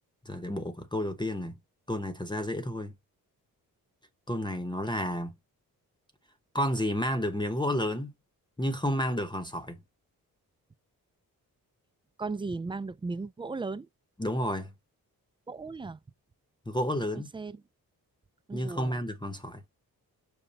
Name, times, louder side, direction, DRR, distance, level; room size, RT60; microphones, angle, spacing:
voice 1, 0.3-1.6 1.9-2.9 4.3-5.4 6.5-8.1 8.6-9.8 14.2-14.7 16.7-17.3 18.5-19.6, equal, 10° left, 0.9 m, -31 dB
voice 2, 12.2-13.9 15.5-16.0 17.1-17.6 18.5-18.9, right 3 dB, 15° right, 0.3 m, -36 dB
5.4 x 2.2 x 4.1 m
cardioid pair, 75°, 37 cm